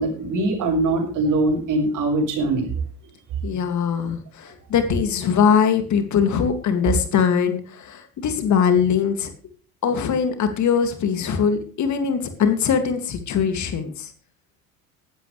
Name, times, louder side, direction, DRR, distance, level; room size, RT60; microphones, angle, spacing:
voice 1, 0.0-2.7, right 2 dB, 45° right, 4 dB, 6.2 m, -22 dB
voice 2, 3.4-9.3 9.8-14.1, left 7 dB, 40° left, 7 dB, 2.6 m, -21 dB
18.0 x 12.5 x 3.4 m, 0.42 s
hypercardioid pair, 70°, 42 cm